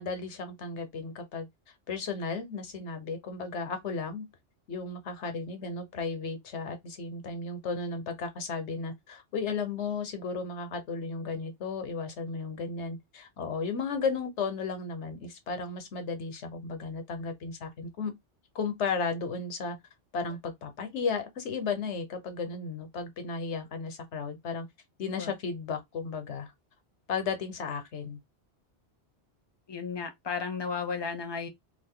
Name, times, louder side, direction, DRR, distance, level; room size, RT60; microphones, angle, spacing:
voice 1, 0.0-1.5 1.9-4.3 4.7-18.1 18.5-19.8 20.1-24.7 25.0-26.5 27.1-28.2, left 4 dB, 80° left, 1.2 m, -34 dB
voice 2, 29.7-31.5, left 5 dB, 30° left, 0.6 m, -34 dB
2.6 x 2.5 x 3.7 m
omnidirectional pair, 1.2 m